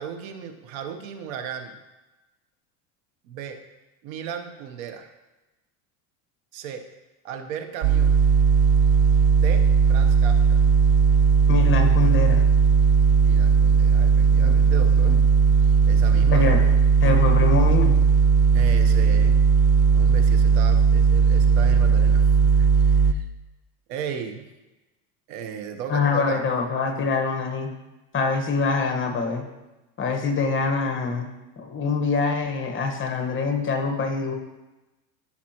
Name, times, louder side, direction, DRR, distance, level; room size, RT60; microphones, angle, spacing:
voice 1, 0.0-1.8 3.3-3.6 4.0-5.1 6.5-6.8 7.2-8.1 9.4-9.6 9.9-10.6 13.2-15.2 15.6-16.5 18.5-19.4 19.9-23.3 23.9-24.5 25.3-26.4, right 8 dB, 70° right, 7 dB, 1.1 m, -35 dB
sound 1, 7.8-23.1, right 5 dB, 35° right, 0.4 m, -17 dB
voice 2, 11.5-12.4 14.3-14.5 15.0-15.2 16.3-16.6 17.0-17.9 25.9-27.7 28.1-29.4 30.0-31.3 31.6-34.3, left 4 dB, 25° left, 4 dB, 1.3 m, -24 dB
14.0 x 5.9 x 3.0 m, 1.0 s
supercardioid pair, 120°, 46 cm